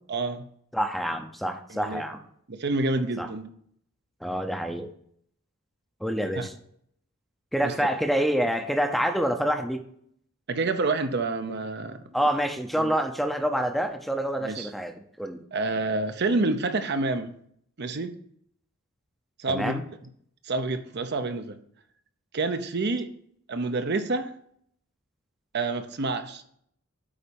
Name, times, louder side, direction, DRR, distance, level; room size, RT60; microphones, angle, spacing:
voice 1, 0.1-0.4 1.7-2.0 2.5-3.5 6.4-6.5 7.6-7.7 10.5-12.1 12.8-13.0 14.4-14.7 15.5-17.3 17.8-18.1 19.4-19.8 20.4-21.6 22.3-23.1 23.5-24.3 25.5-26.4, right 3 dB, 50° right, 0.7 m, -28 dB
voice 2, 0.7-2.2 3.2-3.3 4.2-4.9 6.0-6.5 7.5-9.8 12.1-15.4 19.5-19.8, equal, ahead, 0.7 m, -27 dB
8.8 x 4.2 x 7.0 m
head